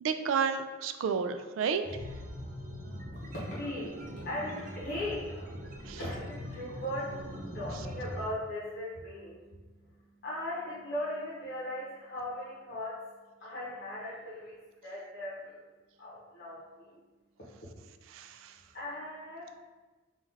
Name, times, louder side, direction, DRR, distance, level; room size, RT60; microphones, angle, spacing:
voice 1, 0.0-1.8 5.9-6.0 18.1-18.5, right 6 dB, 80° right, 9 dB, 0.3 m, -31 dB
sound 1, 1.8-8.3, equal, 45° right, 0.6 m, -42 dB
voice 2, 3.1-13.1 13.4-15.7 16.0-17.0 17.4-17.7 18.7-19.6, left 1 dB, 55° left, -8 dB, 0.8 m, -39 dB
3.8 x 2.4 x 4.0 m, 1.3 s
head